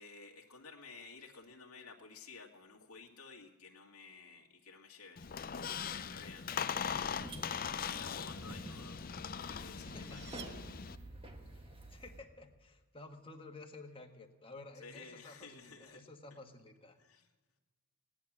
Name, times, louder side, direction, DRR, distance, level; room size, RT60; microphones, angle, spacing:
voice 1, 0.0-5.3 5.9-6.5 7.9-9.0 9.4-10.3 11.4-11.7 14.8-16.0 17.0-17.3, left 4 dB, 80° left, 1 dB, 2.0 m, -54 dB
Squeak, 5.2-11.0, left 7 dB, 40° left, 0.5 m, -40 dB
voice 2, 6.5-8.3 9.7-10.4 11.5-17.0, left 2 dB, 25° left, 3 dB, 1.6 m, -53 dB
sound 1, 7.2-12.2, right 1 dB, 25° right, 1.6 m, -51 dB
sound 2, 9.7-11.4, right 9 dB, 50° right, 0.7 m, -55 dB
17.5 x 10.5 x 7.3 m, 1.2 s
head